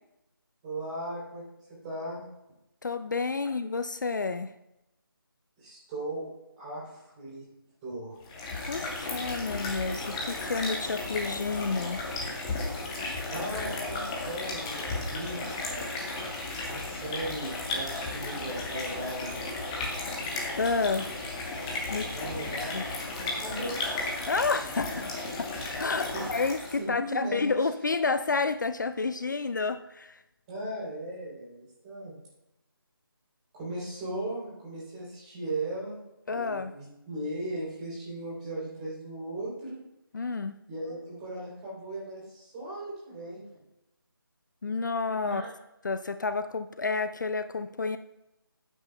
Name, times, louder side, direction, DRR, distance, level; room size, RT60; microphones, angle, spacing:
voice 1, 0.6-1.4 1.8-2.2 5.6-6.2 6.6-7.4 7.8-8.2 13.3-16.1 16.7-19.5 22.1-22.7 23.2-23.7 24.9-25.1 26.1-26.3 26.8-27.5 30.5-32.2 33.5-36.0 36.3-39.8 40.7-43.4 45.2-45.5, right 1 dB, 20° right, -6 dB, 3.4 m, -37 dB
voice 2, 2.8-4.5 8.7-12.0 20.6-21.1 21.9-22.1 22.7-22.8 24.3-25.1 25.4-25.5 25.8-30.2 36.3-36.7 40.1-40.6 44.6-45.4 45.8-48.0, left 4 dB, 55° left, 11 dB, 0.4 m, -30 dB
sound 1, 8.2-26.8, left 2 dB, 15° left, 1.2 m, -34 dB
11.5 x 9.0 x 2.3 m, 0.90 s
figure-of-eight pair, 160°, 12 cm